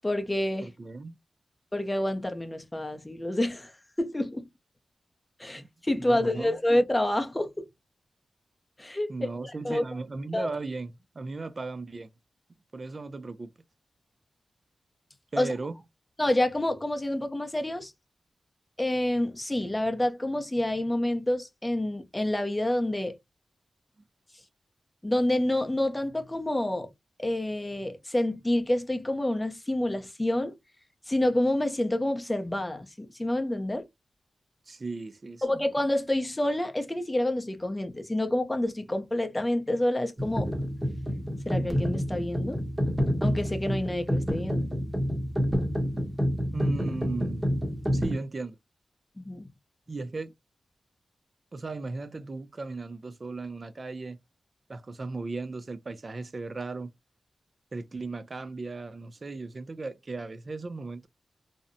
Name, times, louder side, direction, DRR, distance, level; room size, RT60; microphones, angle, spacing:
voice 1, 0.0-0.7 1.7-3.7 4.0-4.5 5.4-7.7 8.8-9.3 9.6-9.8 10.3-10.5 15.4-15.5 16.2-17.9 18.8-23.2 25.0-26.9 27.2-30.5 31.1-33.9 35.4-40.5 41.5-42.6 43.2-44.7 49.2-49.5, left 1 dB, 15° left, 0.5 m, -28 dB
voice 2, 0.6-1.2 5.6-5.7 6.1-6.6 9.1-12.1 12.7-13.5 15.3-15.7 34.7-35.6 46.5-47.5 47.9-48.6 49.9-50.3 51.5-54.2 54.7-56.9 57.7-61.1, right 3 dB, 45° right, 0.3 m, -36 dB
sound 1, 40.2-48.1, equal, 15° right, 0.9 m, -28 dB
2.7 x 2.0 x 2.5 m
wide cardioid pair, 80°, 0 cm